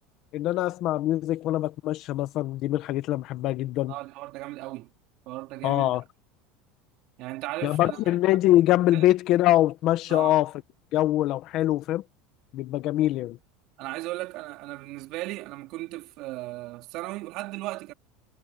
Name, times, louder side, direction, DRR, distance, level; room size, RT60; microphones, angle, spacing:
voice 1, 0.3-3.9 5.6-6.0 7.6-10.5 10.9-12.0 12.5-13.4, left 15 dB, 45° left, 1.4 m, -23 dB
voice 2, 3.9-4.9 5.3-6.0 7.2-8.0 8.9-9.1 10.1-10.4 13.8-17.9, right 19 dB, 55° right, 4.5 m, -36 dB
supercardioid pair, 150°, 0 cm